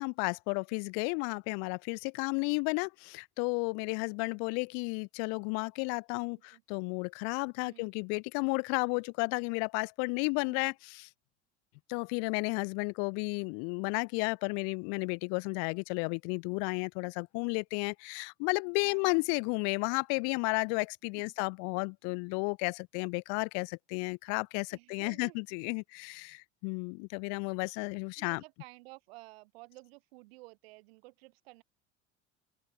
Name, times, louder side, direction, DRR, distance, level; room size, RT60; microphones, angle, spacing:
voice 1, 0.0-11.1 11.9-28.4, left 40 dB or more, 50° left, 0.7 m, -33 dB
voice 2, 10.1-10.7 18.8-19.4 21.2-21.3 24.7-25.4 28.2-31.6, right 23 dB, 60° right, 5.1 m, -54 dB
open air
figure-of-eight pair, 70°, 35 cm